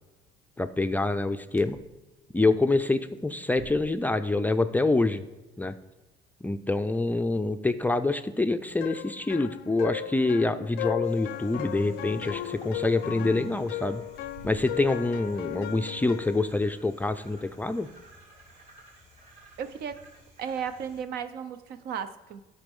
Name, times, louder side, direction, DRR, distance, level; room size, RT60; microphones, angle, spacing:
voice 1, 0.6-1.8 2.3-5.2 5.6-5.7 6.4-14.0 14.4-17.9, left 2 dB, 10° left, 9 dB, 0.4 m, -26 dB
sound 1, 1.6-1.9 2.3-2.4 3.5-4.2 7.0-7.1 8.2-8.3 8.5-8.7 9.3-9.4 10.5-11.9 12.9-13.0 13.9-15.1 15.4-15.5 16.1-16.7 17.0-17.4, right 3 dB, 90° right, 1.0 m, -51 dB
sound 2, 8.8-16.5, left 14 dB, 75° left, 0.4 m, -36 dB
sound 3, 11.0-21.0, right 1 dB, 45° right, 2.6 m, -55 dB
voice 2, 19.6-20.1 20.4-22.4, right 7 dB, 70° right, 11 dB, 0.7 m, -35 dB
10.5 x 4.3 x 5.3 m, 1.1 s
cardioid pair, 110°, 17 cm